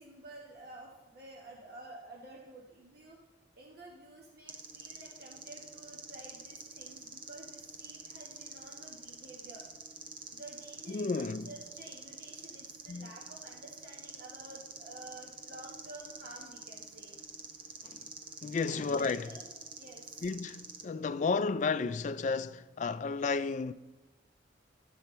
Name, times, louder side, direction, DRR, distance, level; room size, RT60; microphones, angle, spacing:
voice 1, 0.0-3.2 3.5-9.6 10.3-17.2 18.5-19.4 19.7-20.0, right 2 dB, 50° right, 1.2 m, -51 dB
sound 1, 4.5-20.8, right 4 dB, 25° right, 0.7 m, -48 dB
voice 2, 10.9-11.5 12.9-13.1 17.8-18.1 18.4-19.3 20.2-23.7, left 4 dB, 40° left, 0.3 m, -32 dB
12.5 x 6.9 x 4.4 m
head